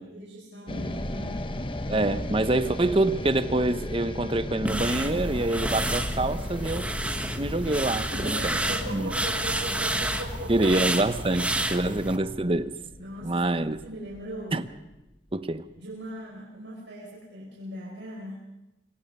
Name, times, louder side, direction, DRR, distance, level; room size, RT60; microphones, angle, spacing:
voice 1, 0.1-1.5 7.6-7.7 8.1-10.9 11.4-12.3 13.0-14.6 15.8-18.4, equal, 75° right, 6.0 m, -39 dB
sound 1, 0.7-14.9, left 1 dB, 30° left, 1.0 m, -36 dB
voice 2, 1.9-6.9 7.4-8.6 8.9-9.1 10.5-12.7 13.2-13.8 14.5-14.7 15.3-15.6, right 2 dB, 30° right, 0.9 m, -26 dB
sound 2, 4.6-12.2, right 1 dB, 5° right, 1.2 m, -30 dB
26.0 x 23.5 x 5.5 m
head